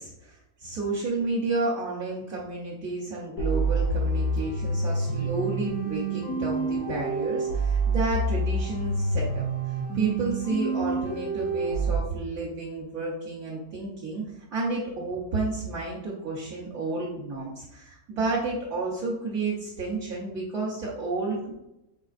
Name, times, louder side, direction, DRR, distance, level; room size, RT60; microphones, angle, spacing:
voice 1, 0.0-9.4 9.9-14.2 14.5-21.5, right 3 dB, 70° right, -7 dB, 1.4 m, -31 dB
sound 1, 3.4-12.0, right 3 dB, 70° left, 1.5 m, -27 dB
5.3 x 3.7 x 2.5 m, 0.89 s
omnidirectional pair, 1.6 m